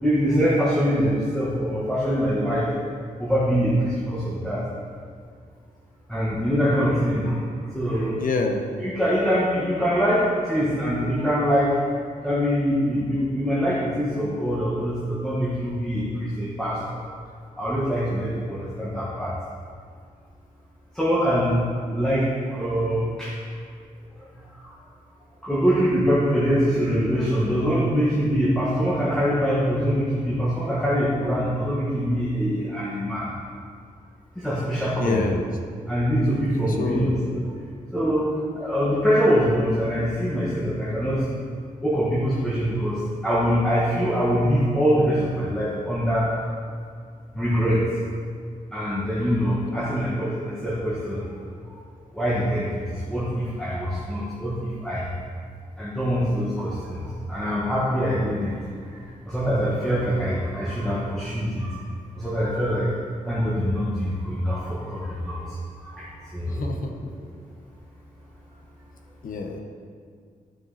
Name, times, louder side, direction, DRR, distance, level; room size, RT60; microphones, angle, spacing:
voice 1, 0.0-2.7 3.2-4.6 6.1-8.2 8.8-11.7 12.2-17.0 17.6-19.4 20.9-21.6 21.9-23.3 24.2-24.7 25.4-33.3 34.4-35.3 35.9-37.4 37.9-41.3 41.8-46.6 47.3-47.8 48.7-51.3 52.1-55.1 55.8-58.6 58.9-62.9 63.2-66.7, equal, 5° left, -9 dB, 1.8 m, -24 dB
voice 2, 8.1-8.6 34.9-35.5 36.8-37.1 49.6-50.3 66.5-67.1 69.2-69.6, left 4 dB, 70° left, 4 dB, 1.2 m, -28 dB
13.0 x 6.9 x 4.3 m, 2.1 s
wide cardioid pair, 135°, 15 cm